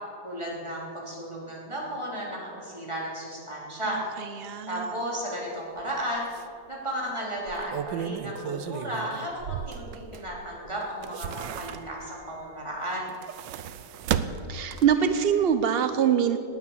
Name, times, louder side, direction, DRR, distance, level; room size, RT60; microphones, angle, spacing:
voice 1, 0.2-4.0 4.7-6.3 6.7-13.1, equal, 15° right, -4 dB, 3.5 m, -34 dB
voice 2, 3.9-5.0 14.5-16.4, right 8 dB, 75° right, 9 dB, 0.5 m, -24 dB
sound 1, 5.8-5.9 6.3-6.4 7.4-10.4 10.8-12.2 13.0-15.1 15.5-15.6, right 9 dB, 90° right, 1.4 m, -34 dB
19.0 x 9.4 x 7.1 m, 2.6 s
omnidirectional pair, 1.9 m